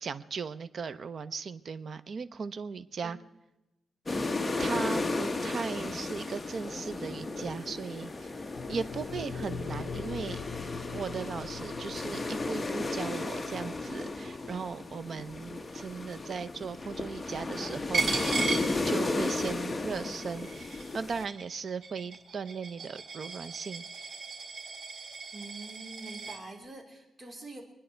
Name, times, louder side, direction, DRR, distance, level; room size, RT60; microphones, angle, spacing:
voice 1, 0.0-3.2 4.6-8.3 8.7-10.4 10.9-18.1 18.8-24.1, right 5 dB, 50° right, 12 dB, 0.8 m, -37 dB
sound 1, 4.1-21.2, left 2 dB, 20° left, 1.1 m, -34 dB
sound 2, 8.5-16.8, left 5 dB, 70° left, 0.7 m, -43 dB
Coin (dropping), 17.9-19.4 19.8-26.4, right 4 dB, 65° right, 4.4 m, -36 dB
voice 2, 25.3-27.6, right 2 dB, 30° right, 2 dB, 2.8 m, -45 dB
25.5 x 10.0 x 4.5 m, 0.96 s
cardioid pair, 120°, 0 cm